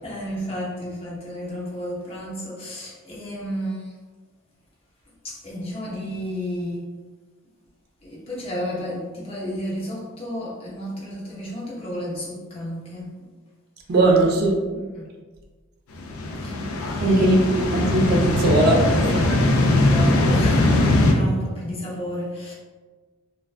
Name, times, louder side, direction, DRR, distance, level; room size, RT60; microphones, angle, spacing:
voice 1, 0.0-3.9 5.2-6.8 8.0-13.1 14.7-15.0 16.4-16.6 16.8-17.4 19.8-22.5, equal, 25° left, -6 dB, 0.5 m, -32 dB
voice 2, 13.9-14.5 17.0-19.5, right 2 dB, 45° right, 0 dB, 0.3 m, -19 dB
sound 1, 16.0-21.1, left 2 dB, 85° left, 0.4 m, -20 dB
2.4 x 2.2 x 2.4 m, 1.4 s
head